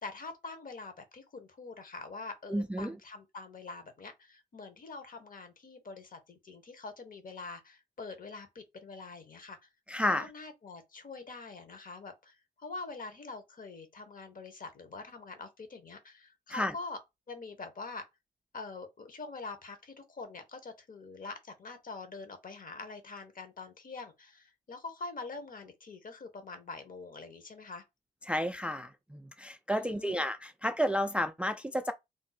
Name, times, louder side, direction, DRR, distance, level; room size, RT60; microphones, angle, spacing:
voice 1, 0.0-9.7 10.1-17.0 17.3-18.0 18.5-27.8 29.8-30.2, left 3 dB, 50° left, 0.9 m, -45 dB
voice 2, 2.5-3.0 9.9-10.3 16.5-16.7 28.3-31.9, equal, 5° right, 0.3 m, -31 dB
2.6 x 2.0 x 3.9 m
supercardioid pair, 55°, 18 cm